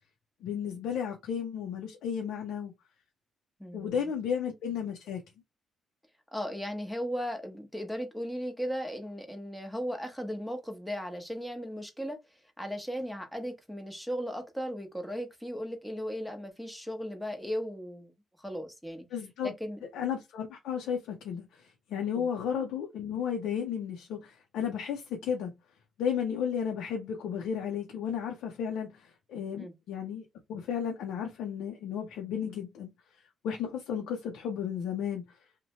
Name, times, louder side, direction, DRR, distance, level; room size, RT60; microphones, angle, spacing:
voice 1, 0.4-2.7 3.7-5.2 19.1-19.5 19.9-21.5 21.9-25.5 26.0-28.9 29.3-30.2 30.5-32.9 33.4-35.2, left 8 dB, 85° left, 0.5 m, -33 dB
voice 2, 3.6-4.1 6.3-12.2 12.6-18.1 18.4-19.0 19.4-19.8 22.1-22.3 29.6-29.7, equal, ahead, 0.8 m, -36 dB
2.7 x 2.1 x 2.8 m
cardioid pair, 90°, 0 cm